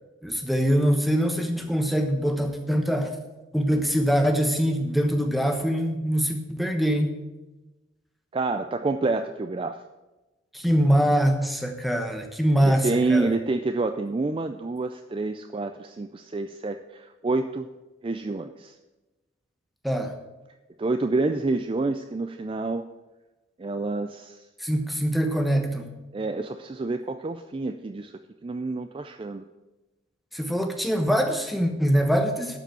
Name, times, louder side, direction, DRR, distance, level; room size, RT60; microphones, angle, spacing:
voice 1, 0.2-3.1 3.5-7.1 10.5-13.3 19.8-20.1 24.6-25.9 30.3-32.6, equal, ahead, 4 dB, 1.0 m, -23 dB
voice 2, 8.3-9.8 12.6-17.7 18.0-18.8 20.8-22.8 23.6-24.5 26.1-29.4, right 3 dB, 25° right, 8 dB, 0.3 m, -28 dB
12.0 x 5.0 x 7.7 m, 1.1 s
head